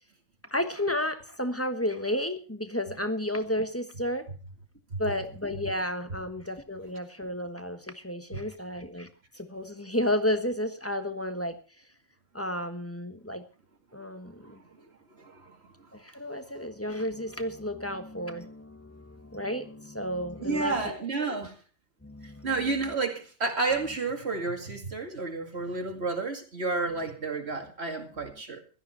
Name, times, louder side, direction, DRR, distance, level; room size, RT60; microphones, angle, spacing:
voice 1, 0.5-4.3 5.0-9.1 9.3-11.6 12.3-13.4 13.9-14.6 15.9-21.0 21.3-21.4 22.0-22.5, left 1 dB, 10° left, 1.2 m, -32 dB
voice 2, 14.3-14.8 15.1-15.9 20.4-21.5 22.2-28.6, right 3 dB, 55° right, 2.5 m, -31 dB
16.5 x 13.0 x 4.4 m
omnidirectional pair, 1.3 m